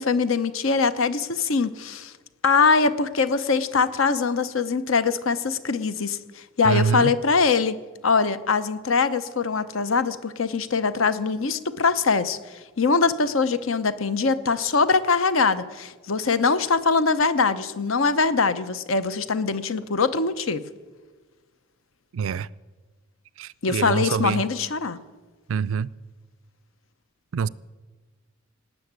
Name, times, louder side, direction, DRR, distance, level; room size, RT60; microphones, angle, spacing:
voice 1, 0.0-2.1 2.4-7.8 8.0-12.4 12.8-20.6 23.6-25.0, left 4 dB, 70° left, 0.8 m, -22 dB
voice 2, 6.6-7.2 22.1-22.5 23.4-24.4 25.5-25.9 27.3-27.5, right 6 dB, 70° right, 0.4 m, -25 dB
18.0 x 7.1 x 9.5 m
head